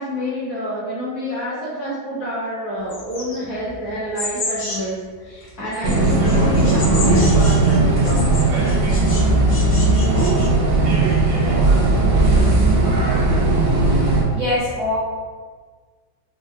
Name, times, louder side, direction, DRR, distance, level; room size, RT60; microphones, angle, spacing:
voice 1, 0.0-8.8, equal, 60° left, -9 dB, 1.2 m, -28 dB
sound 1, 2.9-5.0 5.4-9.2 9.5-10.5, left 2 dB, 90° left, 1.5 m, -31 dB
sound 2, 5.8-14.2, right 2 dB, 75° right, 1.3 m, -17 dB
voice 2, 14.3-15.0, left 2 dB, 45° right, -11 dB, 1.3 m, -22 dB
4.2 x 2.2 x 2.3 m, 1.5 s
omnidirectional pair, 2.1 m